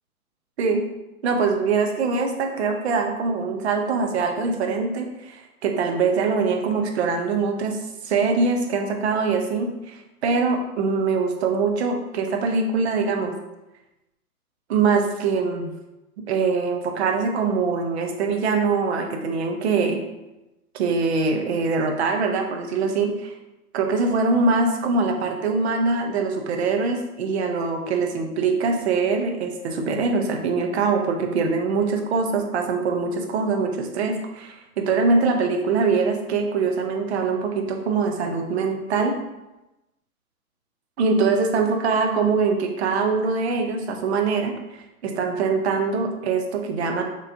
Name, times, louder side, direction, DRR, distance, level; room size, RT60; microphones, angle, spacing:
voice 1, 1.2-7.8 8.0-13.3 14.7-15.7 16.3-20.0 20.7-23.3 23.7-39.1 41.0-47.0, right 4 dB, 45° right, 3 dB, 0.7 m, -23 dB
4.1 x 3.1 x 2.6 m, 0.97 s
hypercardioid pair, 135°, 44 cm